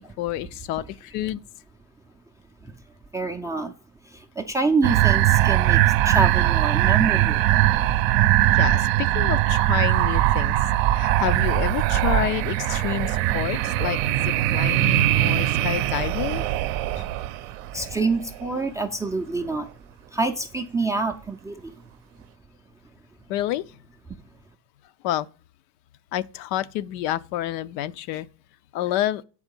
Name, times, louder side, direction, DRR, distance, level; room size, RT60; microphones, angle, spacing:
voice 1, 0.0-1.4 8.5-10.6 10.8-16.4 17.0-17.1 23.3-23.8 25.0-25.3 26.1-28.3 28.7-29.2, left 13 dB, 75° left, 0.6 m, -29 dB
voice 2, 3.1-3.7 4.4-5.8 6.0-7.4 12.8-12.9 14.6-15.0 17.7-19.6 20.1-21.5, right 3 dB, 10° right, 0.3 m, -26 dB
sound 1, 4.8-18.5, right 14 dB, 65° right, 0.6 m, -21 dB
7.2 x 4.8 x 5.2 m
supercardioid pair, 125°, 49 cm